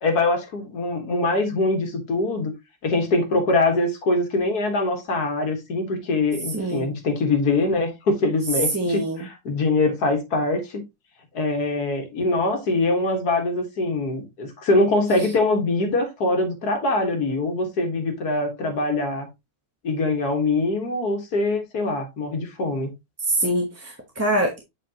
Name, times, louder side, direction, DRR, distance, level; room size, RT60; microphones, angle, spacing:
voice 1, 0.0-2.5 2.8-10.8 11.3-19.3 19.8-22.9, left 2 dB, 90° left, 2.1 m, -23 dB
voice 2, 6.5-7.0 8.7-9.3 23.3-24.6, right 1 dB, 10° right, 0.9 m, -24 dB
7.9 x 4.7 x 2.8 m
omnidirectional pair, 1.6 m